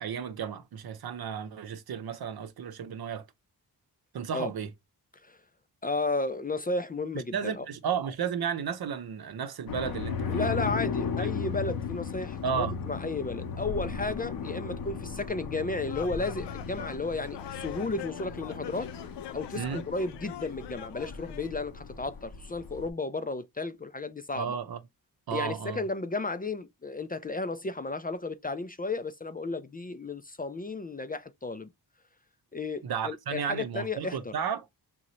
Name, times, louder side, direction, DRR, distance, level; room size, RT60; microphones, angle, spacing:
voice 1, 0.0-3.2 4.1-4.7 7.1-10.8 11.2-11.3 12.4-12.7 19.5-19.8 24.4-24.8 25.3-25.8 32.8-34.7, right 7 dB, 65° right, 0.7 m, -33 dB
voice 2, 5.8-7.7 10.3-18.9 19.3-24.6 25.3-31.7 32.5-34.3, left 3 dB, 25° left, 0.4 m, -33 dB
sound 1, 9.7-22.9, left 6 dB, 60° left, 0.8 m, -36 dB
sound 2, 15.8-21.5, left 12 dB, 90° left, 0.6 m, -43 dB
3.8 x 2.8 x 3.0 m
cardioid pair, 85°, 40 cm